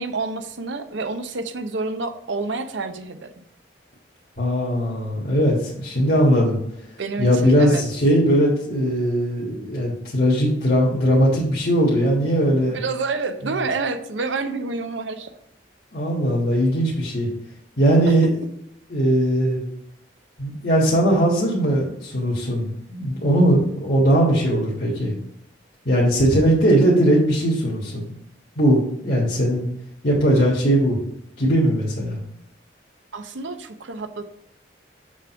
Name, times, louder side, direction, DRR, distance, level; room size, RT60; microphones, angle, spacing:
voice 1, 0.0-3.3 7.0-7.8 12.6-15.3 18.1-18.2 33.1-34.3, right 3 dB, 85° right, 8 dB, 0.7 m, -28 dB
voice 2, 4.4-6.6 7.2-12.8 15.9-17.3 17.8-18.3 18.9-19.6 20.4-25.1 25.8-28.1 28.5-29.7 30.0-31.0 31.4-32.2, equal, 50° left, -5 dB, 1.5 m, -19 dB
6.3 x 3.5 x 5.8 m, 0.75 s
head